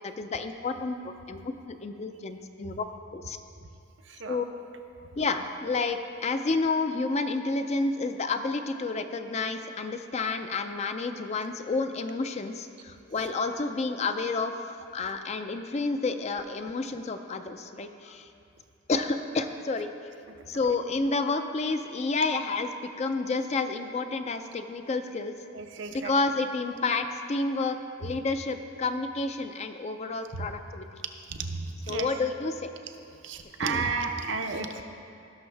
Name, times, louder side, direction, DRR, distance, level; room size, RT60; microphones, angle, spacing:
voice 1, 0.0-1.4 1.7-2.8 3.1-3.4 4.3-4.5 5.2-14.5 14.9-18.3 18.9-19.9 20.5-22.7 23.0-25.3 25.9-30.8 31.9-32.7 33.6-33.9, left 3 dB, 35° left, 7 dB, 0.4 m, -30 dB
voice 2, 4.1-4.4 25.5-26.1 30.3-30.5 31.3-32.1 33.2-34.8, right 4 dB, 65° right, 5 dB, 0.7 m, -32 dB
17.0 x 6.3 x 3.3 m, 2.5 s
head